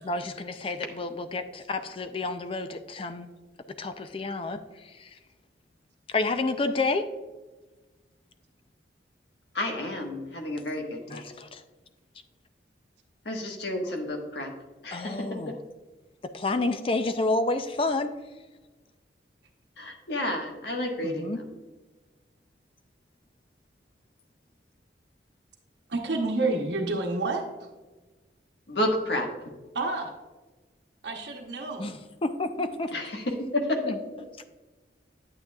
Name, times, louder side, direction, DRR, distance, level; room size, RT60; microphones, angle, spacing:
voice 1, 0.0-3.3 3.8-4.6 5.0-5.1 6.1-7.1 11.1-11.6 14.9-15.6 16.3-18.1 21.0-21.4 31.8-32.0 32.2-32.9 33.8-34.0, left 2 dB, 30° left, 9 dB, 0.4 m, -29 dB
voice 2, 9.5-11.3 13.2-14.5 14.8-15.3 19.8-21.4 28.7-29.3 32.9-33.9, left 1 dB, 65° left, 2 dB, 1.4 m, -30 dB
voice 3, 25.9-27.4 29.7-30.1 31.0-32.0, right 2 dB, 70° right, 1 dB, 0.9 m, -29 dB
9.0 x 8.8 x 2.3 m, 1.2 s
head